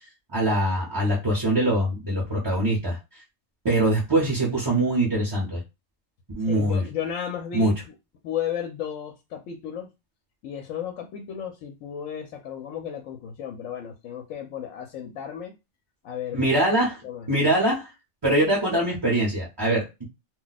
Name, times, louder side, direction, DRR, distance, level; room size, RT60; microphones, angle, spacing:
voice 1, 0.3-3.0 3.6-5.6 6.3-6.8 7.5-7.7 16.3-17.0 17.3-17.9 18.2-20.0, right 1 dB, 25° right, -5 dB, 0.6 m, -23 dB
voice 2, 6.5-7.9 8.2-9.9 10.4-15.5 16.0-16.6 17.0-17.3, left 9 dB, 80° left, 4 dB, 0.9 m, -34 dB
2.3 x 2.2 x 3.9 m, 0.25 s
omnidirectional pair, 1.3 m